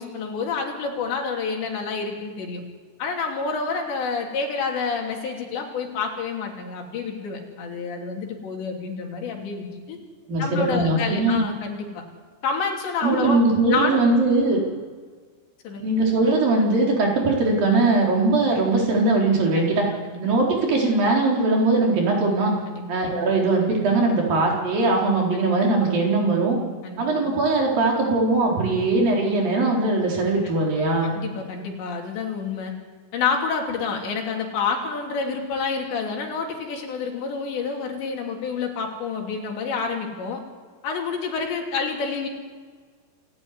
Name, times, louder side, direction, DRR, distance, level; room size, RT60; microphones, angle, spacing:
voice 1, 0.0-2.6 3.0-10.0 10.4-12.0 12.4-13.4 13.7-14.0 15.7-15.8 20.1-20.2 22.7-22.8 26.8-27.3 30.4-30.6 31.1-32.7 33.1-40.4 40.8-42.3, left 5 dB, 80° left, 1 dB, 5.3 m, -28 dB
voice 2, 10.3-11.4 13.0-14.6 15.8-19.8 20.2-22.5 22.9-26.6 27.0-31.1, right 2 dB, 55° right, -1 dB, 5.7 m, -20 dB
27.5 x 13.5 x 9.6 m, 1.6 s
omnidirectional pair, 5.0 m